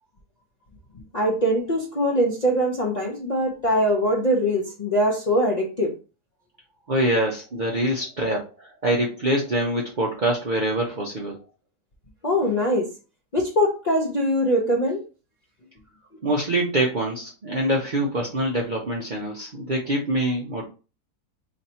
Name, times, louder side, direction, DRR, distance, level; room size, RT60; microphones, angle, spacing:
voice 1, 1.1-6.0 12.2-12.9 13.3-15.0, equal, 80° left, 0.3 m, -22 dB
voice 2, 6.9-11.4 16.2-20.7, right 1 dB, 60° right, 0.4 m, -25 dB
3.2 x 2.7 x 4.2 m
omnidirectional pair, 1.9 m